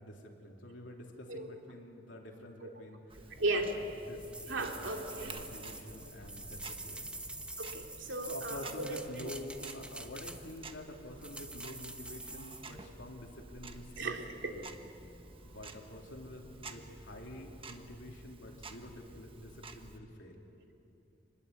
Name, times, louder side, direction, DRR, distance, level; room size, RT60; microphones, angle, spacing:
voice 1, 0.0-3.3 3.6-3.8 4.1-7.1 8.2-14.1 14.5-14.7 15.4-20.4, left 1 dB, 75° left, 0 dB, 3.4 m, -48 dB
Tick-tock, 3.1-20.0, right 3 dB, 30° right, 1.3 m, -51 dB
voice 2, 3.4-3.7 4.5-5.4 7.6-9.3 14.0-14.5 15.4-15.6, right 2 dB, 80° right, 2 dB, 2.6 m, -36 dB
sound 1, 4.2-10.7 11.2-12.7, right 2 dB, 5° right, 1.1 m, -46 dB
26.0 x 20.5 x 8.4 m, 2.8 s
head